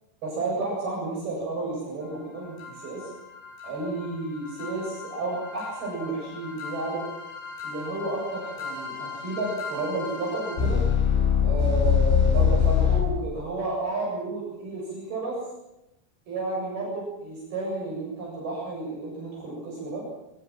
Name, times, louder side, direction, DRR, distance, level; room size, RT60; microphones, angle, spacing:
voice 1, 0.2-3.1 3.6-7.1 7.6-10.8 11.4-15.4 16.3-20.0, right 2 dB, 45° right, -3 dB, 9.6 m, -31 dB
sound 1, 2.6-13.0, left 7 dB, 65° left, 10.5 m, -26 dB
25.5 x 21.5 x 7.6 m, 0.90 s
omnidirectional pair, 6.0 m